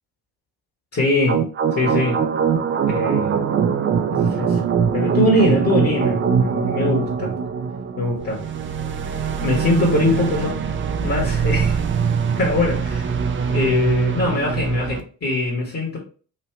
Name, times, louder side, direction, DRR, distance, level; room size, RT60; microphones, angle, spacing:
voice 1, 0.9-1.4 1.7-2.2 2.9-3.4 4.1-7.3 8.0-8.4 9.4-10.6 11.0-11.8 12.4-13.1 13.5-16.0, left 2 dB, 40° left, -2 dB, 1.4 m, -22 dB
sound 1, 1.3-15.0, right 6 dB, 35° right, 0.5 m, -22 dB
3.1 x 2.7 x 3.2 m, 0.40 s
hypercardioid pair, 60°, 36 cm